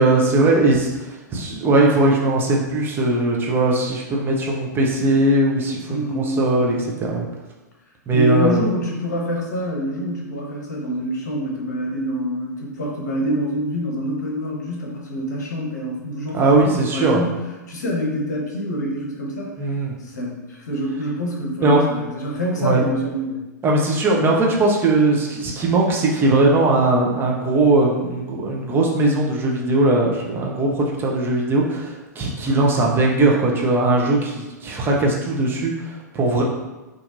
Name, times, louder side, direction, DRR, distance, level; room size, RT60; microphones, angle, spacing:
voice 1, 0.0-7.3 8.1-8.6 16.3-17.2 19.6-19.9 21.6-21.8 22.6-22.8 23.6-36.4, right 2 dB, 20° right, -2 dB, 0.6 m, -19 dB
voice 2, 5.9-6.5 8.1-19.6 20.0-23.4, equal, 70° left, -2 dB, 0.9 m, -26 dB
4.2 x 2.6 x 2.6 m, 1.1 s
figure-of-eight pair, 100°, 10 cm